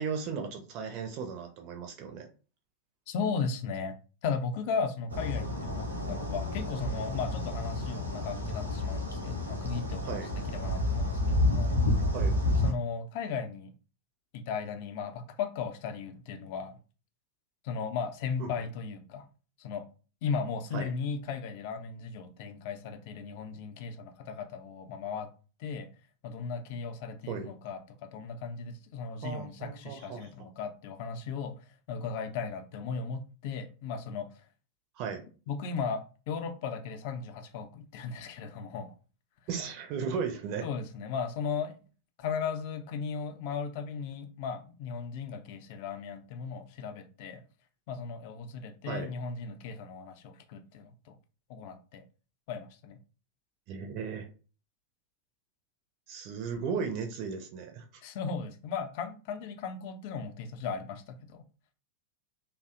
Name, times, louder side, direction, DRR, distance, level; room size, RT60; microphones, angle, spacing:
voice 1, 0.0-2.3 10.0-10.3 12.1-12.4 18.4-18.5 20.7-20.9 27.3-27.5 29.2-30.3 35.0-35.2 39.5-40.7 48.8-49.1 53.7-54.3 56.1-57.8, right 6 dB, 40° right, 0.4 m, -36 dB
voice 2, 3.1-3.9 4.2-10.2 10.5-11.8 12.6-13.7 14.3-16.8 17.6-19.3 19.6-19.8 20.2-25.3 25.6-25.9 26.2-34.3 35.5-38.9 40.6-41.8 42.2-47.4 47.9-51.1 51.5-52.0 52.5-53.0 58.0-61.4, left 5 dB, 50° left, 0.4 m, -36 dB
sound 1, 5.1-12.7, left 1 dB, 80° right, 0.7 m, -30 dB
2.6 x 2.0 x 2.4 m
figure-of-eight pair, 90°, 0 cm